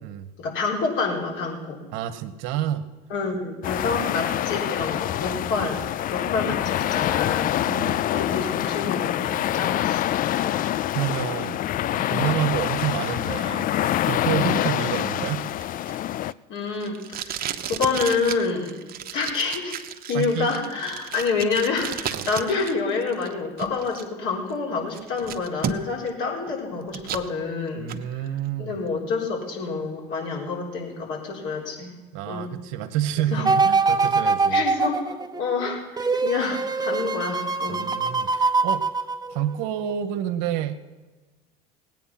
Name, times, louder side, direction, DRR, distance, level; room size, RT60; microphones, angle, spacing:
voice 1, 0.4-1.8 3.1-5.8 6.1-7.6 8.0-10.6 14.9-15.0 16.5-18.8 19.1-19.8 20.1-27.8 28.2-28.3 28.6-31.9 32.3-32.5 33.3-33.5 34.5-35.1 35.4-37.8, left 4 dB, 65° left, -1 dB, 3.9 m, -28 dB
voice 2, 1.9-2.9 7.6-8.0 10.9-11.6 11.9-13.7 14.0-15.5 20.1-20.5 22.1-22.3 27.8-28.8 32.1-34.6 37.7-38.9 39.3-40.8, right 11 dB, 65° right, 9 dB, 1.1 m, -28 dB
sound 1, 3.6-16.3, left 12 dB, 40° left, 0.4 m, -25 dB
Packing tape duct tape, 15.2-22.7 23.0-24.0 24.5-24.6 24.9-26.1 26.5-27.3 27.7-28.0, right 8 dB, 45° right, 1.0 m, -34 dB
sound 2, 33.4-39.7 40.2-40.3, right 4 dB, 20° right, 1.0 m, -23 dB
18.0 x 9.2 x 5.8 m, 1.3 s
hypercardioid pair, 75°, 21 cm